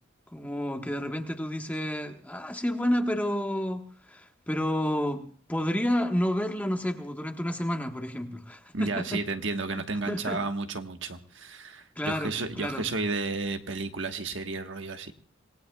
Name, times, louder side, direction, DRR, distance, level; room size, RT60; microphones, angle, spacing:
voice 1, 0.3-5.2 5.5-9.2 10.1-10.4 12.0-12.3 12.6-12.9, equal, 10° left, 4 dB, 1.3 m, -30 dB
voice 2, 8.7-15.1, right 3 dB, 65° right, 5 dB, 1.4 m, -32 dB
26.5 x 18.5 x 2.3 m, 0.43 s
head